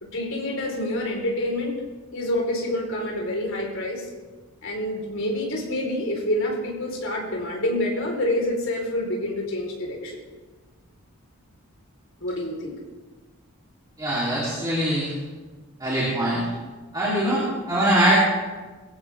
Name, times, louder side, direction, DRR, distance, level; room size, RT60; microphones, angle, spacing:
voice 1, 0.1-1.8 2.1-4.1 4.6-10.2 12.2-12.8 17.0-17.5, left 1 dB, 60° left, -1 dB, 4.6 m, -27 dB
voice 2, 14.0-15.1 15.8-16.4 16.9-18.1, right 1 dB, 15° right, -7 dB, 3.6 m, -22 dB
22.5 x 16.0 x 3.7 m, 1.3 s
head